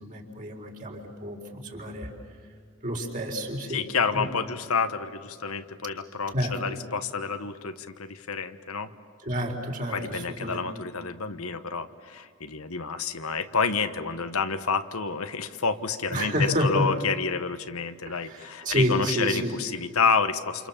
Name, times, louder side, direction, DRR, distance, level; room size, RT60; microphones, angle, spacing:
voice 1, 0.0-2.1 2.8-3.8 4.1-4.3 6.3-6.6 9.2-10.7 16.1-16.9 18.1-19.6, equal, 40° right, 1 dB, 4.2 m, -29 dB
voice 2, 3.7-8.9 9.9-20.7, left 5 dB, 85° left, 9 dB, 1.2 m, -29 dB
28.5 x 28.0 x 7.3 m, 2.1 s
head